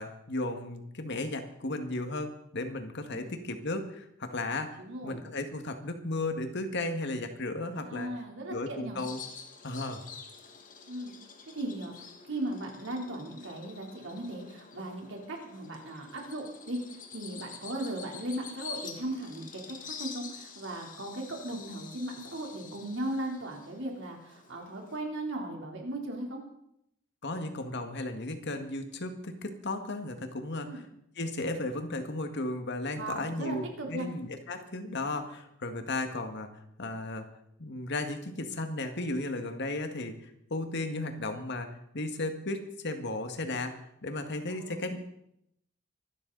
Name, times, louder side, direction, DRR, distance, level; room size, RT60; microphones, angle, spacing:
voice 1, 0.0-8.1 8.5-9.2 9.6-10.0 27.2-30.8 31.2-36.5 36.8-37.3 37.6-41.7 41.9-43.7 44.0-45.0, left 2 dB, 60° left, 6 dB, 1.9 m, -35 dB
voice 2, 4.8-5.2 7.8-9.0 10.8-11.1 11.5-11.9 12.2-26.4 30.6-30.8 33.0-34.1 44.5-45.0, right 1 dB, 65° right, 0 dB, 3.6 m, -37 dB
Bird vocalization bird call bird song, 9.0-25.0, left 6 dB, 45° left, 1.9 m, -47 dB
24.5 x 12.5 x 4.1 m, 0.76 s
head